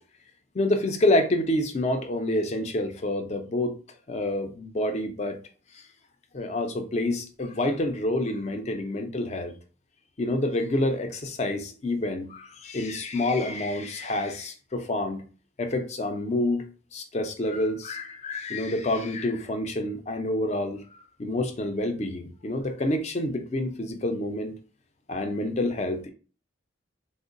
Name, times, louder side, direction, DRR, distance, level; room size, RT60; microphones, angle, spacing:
voice 1, 0.5-3.7 4.1-5.4 6.3-9.5 10.2-15.2 15.6-16.6 16.9-24.5 25.1-26.1, left 1 dB, 35° left, 0.4 m, -28 dB
3.6 x 2.0 x 2.5 m
head